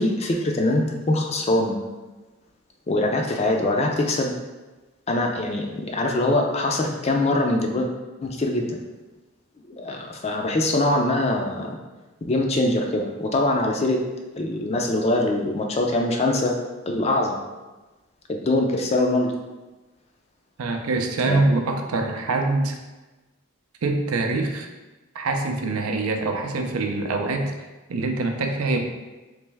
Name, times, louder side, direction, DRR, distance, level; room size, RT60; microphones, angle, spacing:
voice 1, 0.0-1.8 2.9-4.3 5.1-7.9 8.2-8.8 9.7-11.8 12.3-14.0 14.3-16.5 16.9-17.4 18.3-19.3 21.3-21.4, left 2 dB, 30° left, 2 dB, 0.4 m, -23 dB
voice 2, 20.6-22.7 23.8-24.7 25.1-27.5 27.9-28.8, right 3 dB, 85° right, 4 dB, 0.5 m, -24 dB
3.3 x 3.0 x 3.4 m, 1.2 s
head